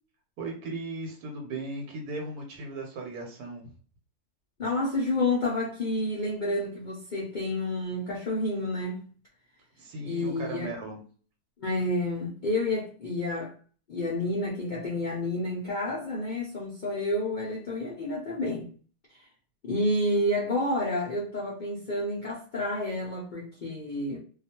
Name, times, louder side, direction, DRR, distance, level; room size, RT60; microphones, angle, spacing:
voice 1, 0.4-3.6 9.8-11.0, right 2 dB, 85° right, 1.2 m, -37 dB
voice 2, 4.6-9.0 10.0-10.7 11.6-13.5 13.9-18.7 19.1-19.3 19.6-24.2, left 1 dB, 80° left, 0.4 m, -29 dB
2.4 x 2.2 x 2.8 m
omnidirectional pair, 1.6 m